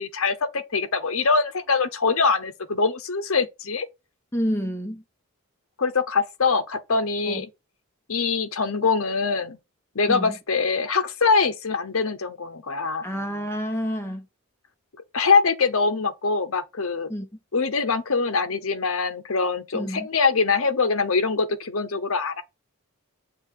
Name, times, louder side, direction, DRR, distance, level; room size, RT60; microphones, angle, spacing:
voice 1, 0.0-3.9 5.8-7.5 8.1-9.6 9.9-13.1 15.1-17.1 17.5-22.4, left 4 dB, 65° left, 0.9 m, -23 dB
voice 2, 4.3-5.0 7.3-7.4 10.1-10.4 13.0-14.3 17.1-17.3 19.7-20.1, equal, 10° left, 1.0 m, -28 dB
7.0 x 2.5 x 5.7 m
head